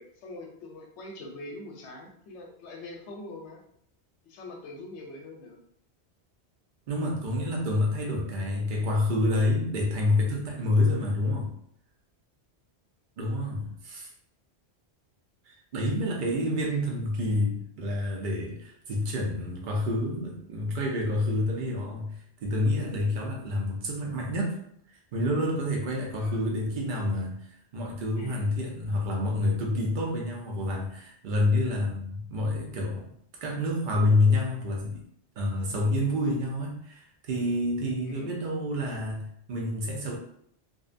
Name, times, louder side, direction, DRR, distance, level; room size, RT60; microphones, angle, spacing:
voice 1, 0.0-3.6 4.2-5.6 16.6-16.8 26.2-26.4 28.2-28.4 38.0-38.4, left 2 dB, 85° left, 1 dB, 0.9 m, -43 dB
voice 2, 6.9-11.5 13.2-14.1 15.5-22.1 22.4-24.5 25.1-33.1 33.4-35.0 35.4-40.2, left 1 dB, 55° right, -1 dB, 0.7 m, -28 dB
2.6 x 2.1 x 2.4 m, 0.69 s
omnidirectional pair, 1.1 m